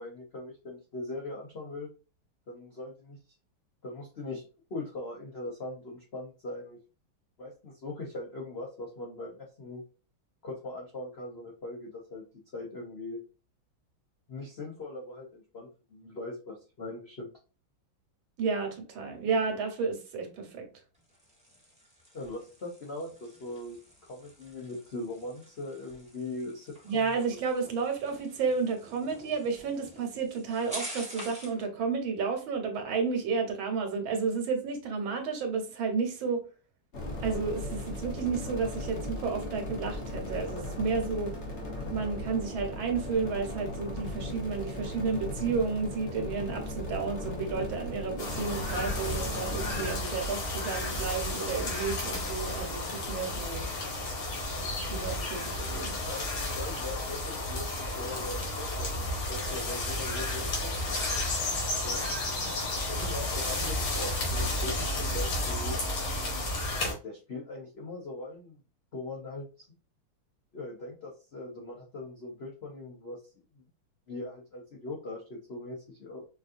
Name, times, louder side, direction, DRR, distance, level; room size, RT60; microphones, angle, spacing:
voice 1, 0.0-1.9 2.5-3.2 3.8-4.4 4.7-6.8 7.4-9.8 10.4-12.3 12.5-13.2 14.3-17.3 22.1-27.4 55.4-55.5 56.0-60.7 61.8-62.2 62.9-65.8 66.7-68.6 68.9-69.7 70.5-73.2 74.1-76.2, left 2 dB, 70° left, 0.5 m, -40 dB
voice 2, 18.4-20.7 26.8-36.4 37.2-41.4 41.9-53.6 54.9-56.0, right 5 dB, 75° right, 1.7 m, -32 dB
sound 1, 20.9-31.6, equal, 5° right, 0.6 m, -48 dB
sound 2, 36.9-50.0, left 1 dB, 45° left, 1.0 m, -37 dB
sound 3, 48.2-66.9, left 1 dB, 90° left, 2.3 m, -32 dB
5.1 x 2.6 x 2.5 m
omnidirectional pair, 2.3 m